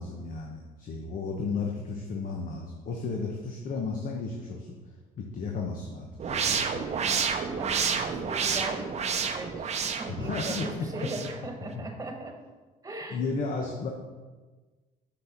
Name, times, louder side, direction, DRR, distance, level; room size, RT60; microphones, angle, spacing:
voice 1, 0.0-4.8 5.2-6.8 10.1-10.7 11.7-11.8 13.1-13.9, left 4 dB, 50° left, 1 dB, 1.1 m, -34 dB
sound 1, 6.2-11.4, right 6 dB, 40° right, 0.7 m, -30 dB
voice 2, 6.8-12.4 12.8-13.2, right 2 dB, 20° right, 3 dB, 1.5 m, -40 dB
6.1 x 6.1 x 5.9 m, 1.3 s
cardioid pair, 110°, 17 cm